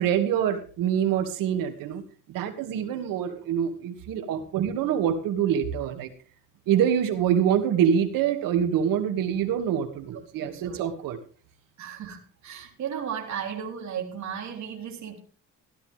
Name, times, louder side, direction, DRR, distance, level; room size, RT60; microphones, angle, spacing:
voice 1, 0.0-2.0 2.3-6.1 6.7-11.2, right 9 dB, 90° right, 6 dB, 2.4 m, -25 dB
voice 2, 10.1-10.9 11.8-15.2, right 8 dB, 60° right, 1 dB, 3.7 m, -35 dB
16.0 x 12.5 x 3.6 m, 0.40 s
cardioid pair, 120°, 33 cm